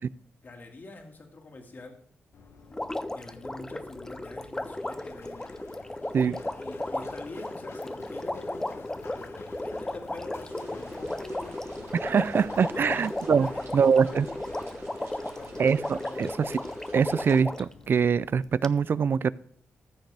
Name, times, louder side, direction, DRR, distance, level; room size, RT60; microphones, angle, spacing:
voice 1, 0.4-2.0 3.1-5.4 6.2-11.6 12.2-16.3, left 2 dB, 40° left, 2.0 m, -46 dB
Run, 2.3-18.5, left 4 dB, 65° left, 1.0 m, -50 dB
Water, 2.7-17.7 18.6-18.7, left 1 dB, 10° left, 0.5 m, -35 dB
sound 1, 10.5-17.4, right 3 dB, 75° right, 3.1 m, -50 dB
voice 2, 12.0-14.3 15.6-16.3 16.9-19.3, right 6 dB, 50° right, 0.3 m, -24 dB
14.5 x 6.5 x 3.4 m
cardioid pair, 100°, 5 cm